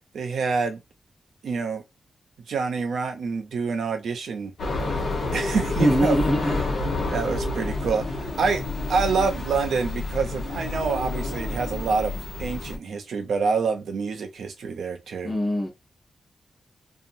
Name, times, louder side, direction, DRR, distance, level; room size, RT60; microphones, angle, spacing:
voice 1, 0.1-0.8 1.4-1.8 2.5-4.5 5.3-6.2 7.1-8.6 8.9-15.3, right 5 dB, 85° right, 0.6 m, -27 dB
sound 1, 4.6-12.8, left 2 dB, 80° left, 1.1 m, -29 dB
voice 2, 5.8-6.6 15.2-15.7, equal, 15° left, 0.8 m, -22 dB
2.7 x 2.4 x 2.6 m
wide cardioid pair, 145°, 0 cm